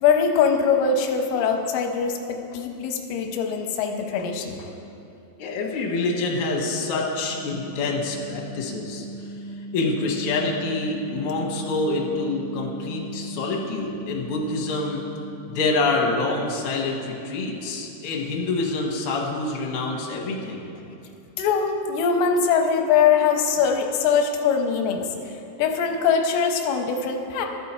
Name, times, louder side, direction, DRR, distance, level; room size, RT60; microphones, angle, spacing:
voice 1, 0.0-4.6 21.4-27.5, left 6 dB, 80° left, 3 dB, 2.1 m, -22 dB
voice 2, 5.4-9.0 9.7-15.0 15.5-20.6, left 3 dB, 65° left, -2 dB, 1.5 m, -26 dB
sound 1, 6.8-16.9, equal, 75° right, 2.7 m, -39 dB
13.5 x 5.6 x 4.3 m, 2.7 s
omnidirectional pair, 4.3 m